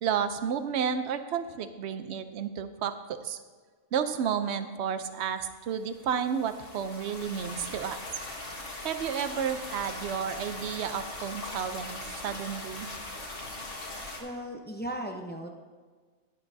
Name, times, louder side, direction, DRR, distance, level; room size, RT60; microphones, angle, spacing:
voice 1, 0.0-3.4 3.9-8.0 8.8-12.9, right 7 dB, 60° right, 10 dB, 0.8 m, -31 dB
sound 1, 5.8-14.2, left 2 dB, 45° left, 1.8 m, -40 dB
voice 2, 14.2-15.5, right 1 dB, 10° left, 2 dB, 0.5 m, -36 dB
11.5 x 11.0 x 2.7 m, 1.5 s
omnidirectional pair, 1.4 m